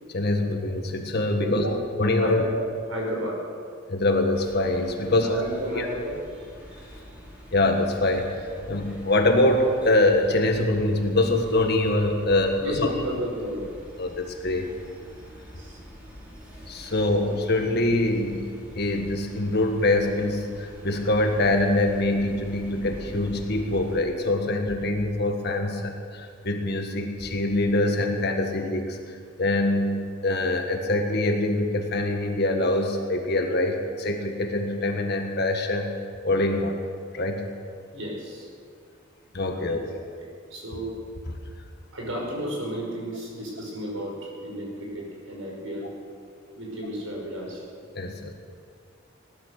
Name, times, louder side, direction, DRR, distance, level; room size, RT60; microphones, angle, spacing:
voice 1, 0.1-1.7 2.0-2.5 3.9-5.4 5.7-5.9 7.5-8.3 8.7-12.9 14.0-14.7 16.7-36.0 36.2-36.8 37.1-37.5 39.3-39.9 47.9-48.3, left 2 dB, 55° left, 3 dB, 1.7 m, -24 dB
voice 2, 1.4-1.7 2.2-3.4 5.0-6.5 12.6-13.7 15.5-15.8 16.5-16.7 37.9-38.5 39.7-39.8 40.2-41.0 41.9-45.9 46.5-47.6, equal, 80° right, -2 dB, 5.4 m, -33 dB
sound 1, 4.3-24.0, equal, 5° right, 3.5 m, -45 dB
18.0 x 11.5 x 6.7 m, 2.1 s
head